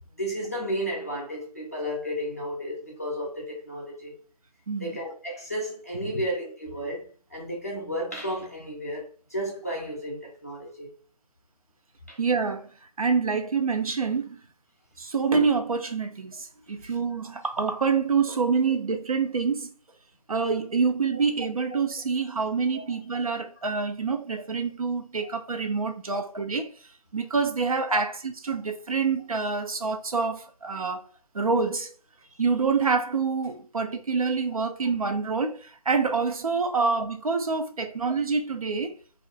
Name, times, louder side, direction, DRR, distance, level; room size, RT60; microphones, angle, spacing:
voice 1, 0.2-4.1 4.8-10.9 12.1-12.2 16.8-16.9 22.7-22.8 26.1-26.2 27.9-28.0, equal, 25° left, 0.4 m, -33 dB
voice 2, 4.7-5.0 12.2-12.7 13.0-14.4 15.0-19.7 20.3-26.7 27.1-31.0 31.3-31.9 32.4-38.9, right 5 dB, 60° right, 0.4 m, -26 dB
2.4 x 2.1 x 2.5 m
figure-of-eight pair, 165°, 21 cm